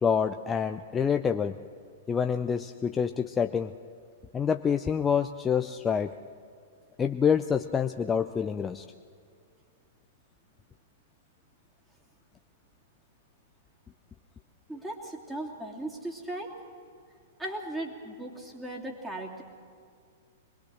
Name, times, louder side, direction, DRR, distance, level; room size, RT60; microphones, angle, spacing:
voice 1, 0.0-1.5 2.1-3.7 4.3-6.1 7.0-8.8, left 7 dB, 15° left, 8 dB, 0.5 m, -27 dB
voice 2, 14.7-16.5 17.4-19.4, right 1 dB, 5° right, -1 dB, 3.0 m, -37 dB
23.5 x 21.0 x 6.4 m, 2.3 s
figure-of-eight pair, 105°, 0 cm